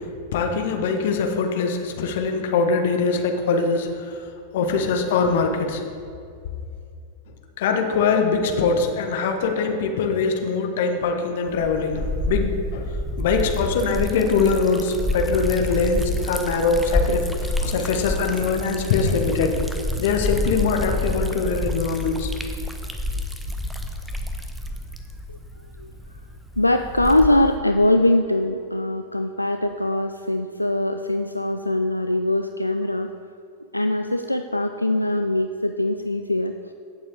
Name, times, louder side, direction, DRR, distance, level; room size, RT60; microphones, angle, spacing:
voice 1, 0.0-4.2 4.5-5.8 7.6-12.9 13.2-19.5 20.0-22.3, left 4 dB, 55° left, 4 dB, 1.1 m, -22 dB
Liquid, 11.5-27.6, left 1 dB, 5° right, 0.8 m, -28 dB
voice 2, 26.6-33.1 33.7-36.5, left 1 dB, 85° left, 6 dB, 0.3 m, -22 dB
16.0 x 6.9 x 3.5 m, 2.4 s
figure-of-eight pair, 90°, 0 cm